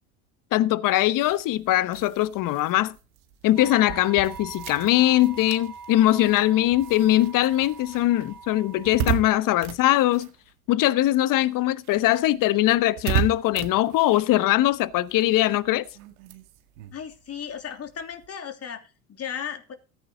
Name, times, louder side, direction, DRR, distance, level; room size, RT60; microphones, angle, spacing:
voice 1, 0.5-3.0 3.4-10.3 10.7-15.9, left 15 dB, 50° left, 1.1 m, -21 dB
sound 1, 1.1-11.0 11.3-18.3, right 11 dB, 75° right, 2.0 m, -36 dB
sound 2, 3.6-9.2, right 5 dB, 55° right, 2.4 m, -42 dB
voice 2, 16.9-19.7, left 8 dB, 35° left, 3.1 m, -36 dB
14.5 x 8.7 x 3.9 m
hypercardioid pair, 90°, 42 cm